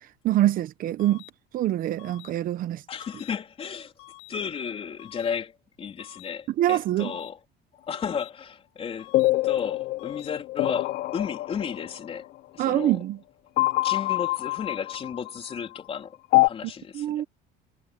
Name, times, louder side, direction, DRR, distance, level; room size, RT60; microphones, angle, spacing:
voice 1, 0.2-1.2 1.5-2.8 6.6-7.1 12.6-13.2 16.9-17.2, right 13 dB, 50° right, 0.9 m, -24 dB
sound 1, 1.0-1.3 2.0-2.3 3.0-3.3 4.0-4.3 5.0-5.3 6.0-6.3 7.0-7.3 8.0-8.3 9.0-9.3 10.0-10.3, left 29 dB, 85° left, 6.8 m, -48 dB
voice 2, 2.9-3.9 4.3-7.4 7.9-9.1 9.4-12.3 12.5-13.0 13.8-17.2, left 7 dB, 30° left, 3.5 m, -33 dB
sound 2, 9.1-12.2 13.6-15.5 16.3-16.5, left 19 dB, 50° left, 0.5 m, -25 dB
cardioid pair, 150°, 19 cm